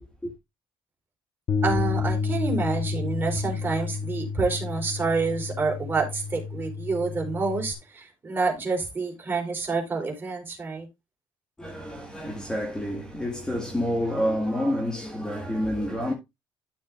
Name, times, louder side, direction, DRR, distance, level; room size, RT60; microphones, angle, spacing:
Bass guitar, 1.5-7.7, left 5 dB, 40° left, 1.3 m, -30 dB
voice 1, 1.6-10.9, right 4 dB, 20° right, 4.2 m, -28 dB
voice 2, 11.6-16.1, equal, 10° left, 2.0 m, -28 dB
12.5 x 7.2 x 2.5 m
cardioid pair, 145°, 9 cm